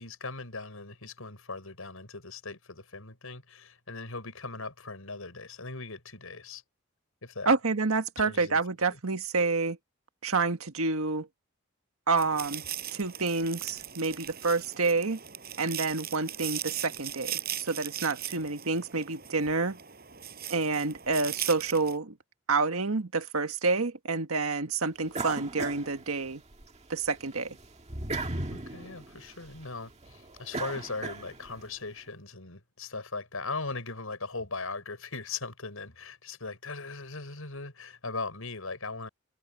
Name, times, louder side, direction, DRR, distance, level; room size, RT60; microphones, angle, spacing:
voice 1, 0.0-6.6 7.2-7.5 8.2-8.6 8.9-9.0 28.5-39.1, left 3 dB, 75° left, 5.7 m, -39 dB
voice 2, 7.4-9.8 10.2-11.3 12.1-12.6 12.9-15.2 15.6-19.8 20.5-22.1 22.5-26.4 26.9-27.5, right 4 dB, 85° right, 1.5 m, -28 dB
sound 1, 12.2-22.0, right 11 dB, 45° right, 5.1 m, -39 dB
sound 2, 25.1-26.7 27.1-31.6, right 2 dB, 30° right, 1.9 m, -37 dB
head